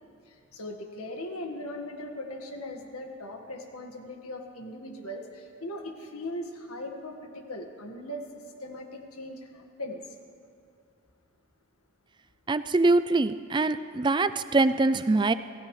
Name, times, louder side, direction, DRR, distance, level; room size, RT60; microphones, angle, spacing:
voice 1, 0.3-8.3 8.6-10.0, left 1 dB, 90° left, 3 dB, 1.7 m, -39 dB
voice 2, 12.5-15.3, right 3 dB, 20° right, 13 dB, 0.4 m, -23 dB
27.0 x 16.0 x 3.2 m, 2.5 s
head